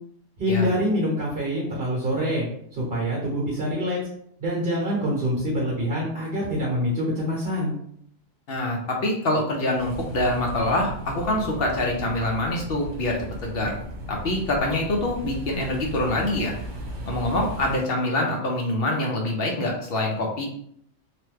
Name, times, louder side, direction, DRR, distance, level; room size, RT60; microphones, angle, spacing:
voice 1, 0.4-2.5 2.7-4.0 4.4-7.7, equal, 50° right, -4 dB, 1.0 m, -25 dB
voice 2, 8.5-13.8 14.1-16.5 17.1-20.5, left 1 dB, 55° left, 0 dB, 0.8 m, -25 dB
sound 1, 9.8-17.8, equal, 70° right, 1.2 m, -36 dB
3.0 x 2.2 x 3.2 m, 0.66 s
omnidirectional pair, 1.3 m